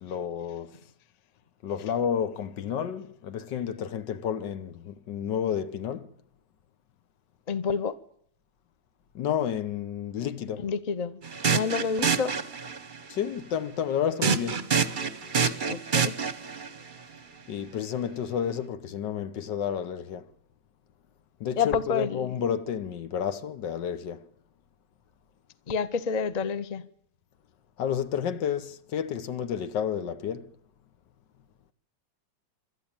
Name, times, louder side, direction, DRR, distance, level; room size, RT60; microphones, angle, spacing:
voice 1, 0.0-0.8 1.6-6.1 9.2-10.7 13.1-14.7 17.5-20.3 21.4-24.3 27.8-30.5, left 8 dB, 85° left, 1.7 m, -31 dB
voice 2, 7.5-7.9 10.6-11.2 11.5-12.4 15.7-16.1 21.6-22.4 25.7-26.8, left 5 dB, 35° left, 0.7 m, -28 dB
sound 1, 11.2-13.0 14.2-16.7, right 6 dB, 35° right, 0.9 m, -27 dB
26.5 x 12.5 x 8.9 m
omnidirectional pair, 1.9 m